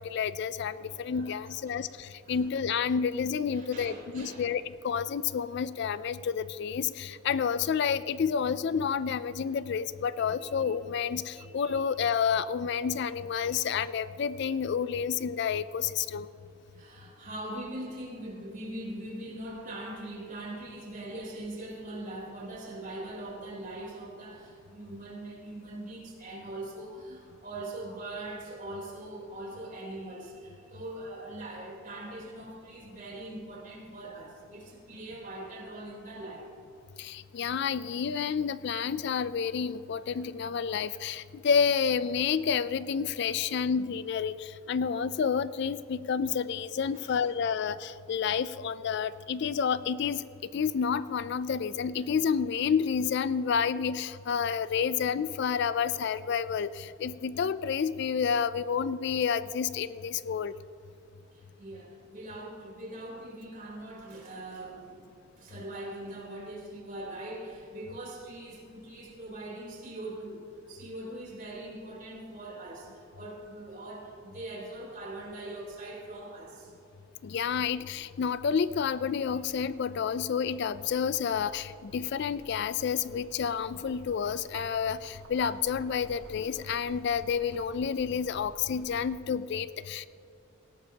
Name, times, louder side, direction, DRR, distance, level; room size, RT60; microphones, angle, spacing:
voice 1, 0.0-16.3 37.0-50.2 50.5-60.5 77.2-90.1, left 6 dB, 55° left, 15 dB, 0.3 m, -30 dB
voice 2, 0.8-1.8 2.3-2.5 3.5-4.5 10.2-10.7 11.3-11.8 13.4-13.6 16.7-36.5 46.9-47.2 61.3-76.7, right 1 dB, 40° right, -2 dB, 3.6 m, -42 dB
sound 1, 77.5-89.2, right 1 dB, 85° right, 1.6 m, -55 dB
18.5 x 17.0 x 2.9 m, 2.7 s
head